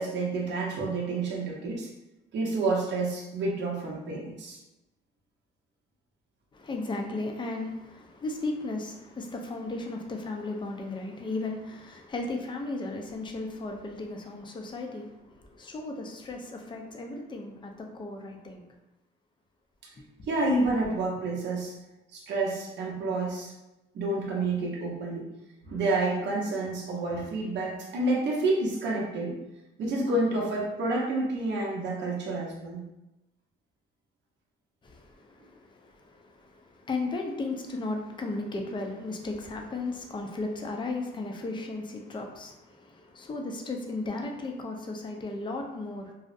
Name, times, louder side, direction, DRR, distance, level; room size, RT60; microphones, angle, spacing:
voice 1, 0.0-1.9 2.3-4.6 20.3-21.7 22.1-23.5 23.9-25.3 25.6-29.4 29.8-32.8, right 2 dB, 65° right, -3 dB, 0.6 m, -29 dB
voice 2, 6.5-18.6 20.0-20.3 34.8-46.1, left 2 dB, 25° left, 2 dB, 0.4 m, -35 dB
2.6 x 2.0 x 2.5 m, 0.97 s
cardioid pair, 90°, 20 cm